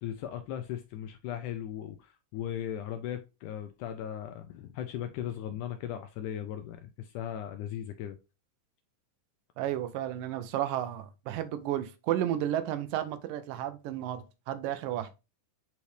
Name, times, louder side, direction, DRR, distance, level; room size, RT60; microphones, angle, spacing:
voice 1, 0.0-8.2, left 10 dB, 85° left, 1.8 m, -37 dB
voice 2, 9.6-15.1, right 11 dB, 80° right, 2.3 m, -32 dB
8.2 x 4.2 x 3.2 m
omnidirectional pair, 4.0 m